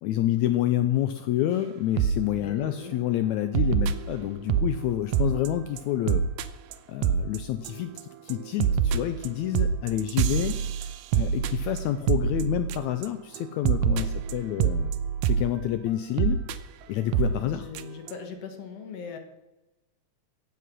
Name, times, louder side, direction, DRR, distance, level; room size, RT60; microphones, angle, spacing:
voice 1, 0.0-6.3 6.9-14.9 15.3-16.4 16.9-17.7, left 12 dB, 90° left, 11 dB, 1.6 m, -28 dB
sound 1, 2.0-2.2 2.6-2.9 3.5-4.7 5.1-5.5 5.8-5.9 6.1-6.4 6.7-6.8 7.0-7.4 7.6-8.0 8.3-13.1 13.3-13.4 13.6-15.5 16.2-16.5 17.1-17.4 17.7-17.8 18.1-18.2, right 8 dB, 80° right, 2.3 m, -25 dB
voice 2, 2.3-2.9 13.9-14.1 17.4-19.2, left 6 dB, 55° left, 6 dB, 2.1 m, -40 dB
15.5 x 9.2 x 6.2 m, 1.0 s
omnidirectional pair, 3.9 m